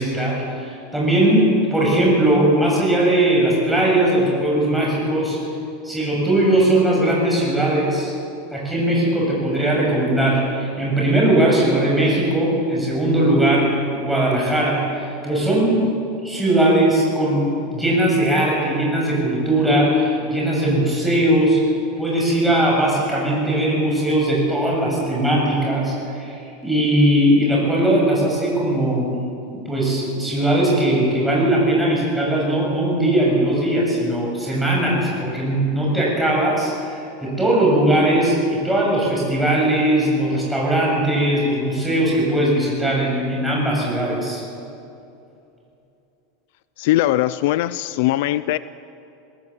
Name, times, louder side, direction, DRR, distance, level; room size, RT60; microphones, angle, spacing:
voice 1, 0.0-5.4 5.8-8.1 8.5-15.8 16.2-21.6 22.0-26.3 26.6-29.1 29.5-44.4, right 1 dB, 5° right, -4 dB, 7.0 m, -19 dB
voice 2, 46.8-48.6, left 15 dB, 60° left, 15 dB, 0.5 m, -20 dB
22.0 x 18.5 x 8.0 m, 2.7 s
supercardioid pair, 160°, 0 cm